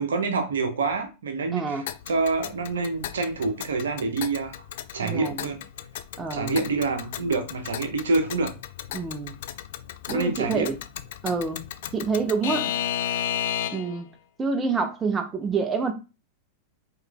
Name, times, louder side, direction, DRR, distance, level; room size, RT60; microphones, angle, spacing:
voice 1, 0.0-4.6 4.9-5.6 6.3-8.5 10.1-10.7, right 3 dB, 65° right, 0.9 m, -27 dB
voice 2, 1.5-1.9 5.0-5.4 6.2-6.6 8.9-9.3 10.1-10.8 11.2-11.6 11.9-12.7 13.7-14.1 14.4-15.9, right 4 dB, 20° right, 0.7 m, -27 dB
Alarm / Clock, 1.9-14.0, left 10 dB, 55° left, 0.3 m, -34 dB
4.6 x 3.2 x 2.3 m
figure-of-eight pair, 90°, 0 cm